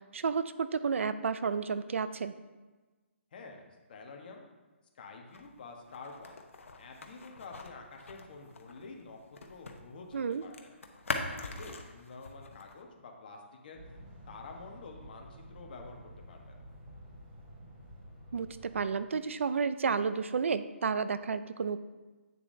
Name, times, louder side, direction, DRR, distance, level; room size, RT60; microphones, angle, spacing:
voice 1, 0.1-2.3 10.1-10.4 18.3-21.8, right 5 dB, 75° right, 13 dB, 0.4 m, -31 dB
voice 2, 3.3-4.5 4.9-6.4 6.8-9.2 9.4-10.7 11.3-13.4 13.6-13.8 14.3-16.0 16.3-16.6, left 4 dB, 45° left, 2 dB, 1.2 m, -48 dB
sound 1, 5.3-9.8 10.1-12.8, left 3 dB, 90° left, 0.9 m, -42 dB
sound 2, 13.7-18.9, equal, 20° right, 1.4 m, -51 dB
8.4 x 6.8 x 2.7 m, 1.3 s
hypercardioid pair, 165°, 7 cm